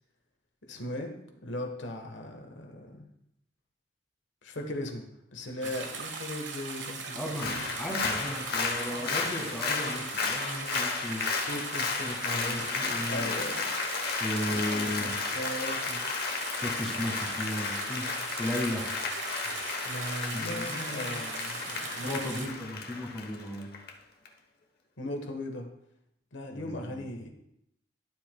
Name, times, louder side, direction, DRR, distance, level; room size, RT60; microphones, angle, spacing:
voice 1, 0.7-1.1 1.4-3.1 4.4-7.7 8.9-9.2 11.5-13.7 14.5-16.0 19.8-22.5 25.0-25.7 26.3-27.3, left 1 dB, 75° left, 3 dB, 1.2 m, -38 dB
sound 1, 5.6-22.5, right 4 dB, 75° right, 1.2 m, -39 dB
voice 2, 7.1-11.3 12.0-13.4 14.2-15.1 16.5-18.9 20.3-21.2 22.0-23.7 26.5-27.1, equal, ahead, -2 dB, 1.6 m, -36 dB
Applause, 7.3-23.9 24.3-24.4, left 4 dB, 55° left, 1.0 m, -33 dB
11.5 x 7.5 x 2.2 m, 0.78 s
head